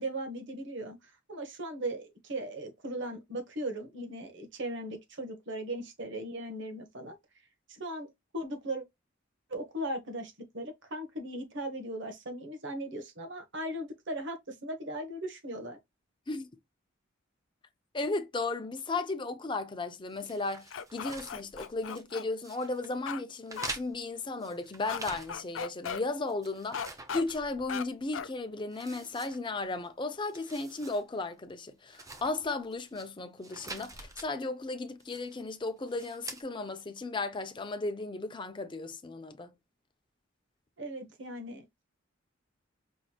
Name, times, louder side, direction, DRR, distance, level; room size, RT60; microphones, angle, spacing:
voice 1, 0.0-7.1 7.7-8.8 9.5-15.8 40.8-41.6, right 1 dB, 65° right, 1.3 m, -38 dB
voice 2, 17.9-39.5, left 3 dB, 25° left, 0.6 m, -35 dB
sound 1, 20.2-22.1 22.4-22.9 23.5-25.6 25.9-27.9 28.2-28.3 28.7-29.9 30.2-31.0 31.3-31.4 31.9-33.1 33.4-34.3 35.0-35.4 35.9-36.4, right 3 dB, 15° right, 0.7 m, -46 dB
sound 2, 20.7-22.2 23.1-23.2 23.6-23.7 24.9-25.0 25.3-26.0 26.7-27.2 27.7-27.8 28.1-28.3, left 7 dB, 70° left, 0.5 m, -37 dB
5.3 x 3.0 x 2.3 m
head